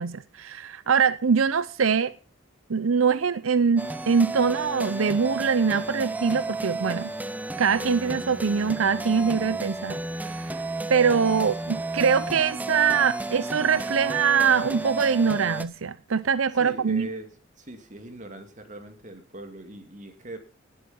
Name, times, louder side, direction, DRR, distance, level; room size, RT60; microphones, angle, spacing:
voice 1, 0.0-2.1 2.7-7.1 7.6-10.0 10.2-10.5 10.9-17.1, right 6 dB, 85° right, 0.6 m, -23 dB
sound 1, 3.8-15.7, right 2 dB, 10° right, 0.8 m, -33 dB
voice 2, 16.6-17.3 17.6-20.4, right 1 dB, 40° right, 2.3 m, -40 dB
19.0 x 8.2 x 5.5 m
head